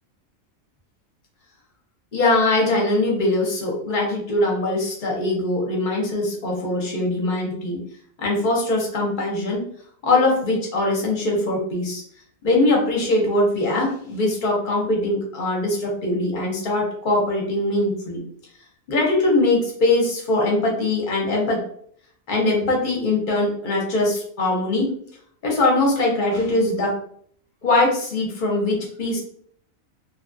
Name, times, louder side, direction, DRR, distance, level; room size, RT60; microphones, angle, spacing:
voice 1, 2.1-7.8 8.2-9.7 10.0-12.0 12.4-18.2 18.9-21.6 22.3-24.9 25.4-27.0 27.6-29.2, left 2 dB, 45° left, -1 dB, 0.8 m, -21 dB
2.8 x 2.3 x 2.5 m, 0.63 s
omnidirectional pair, 1.4 m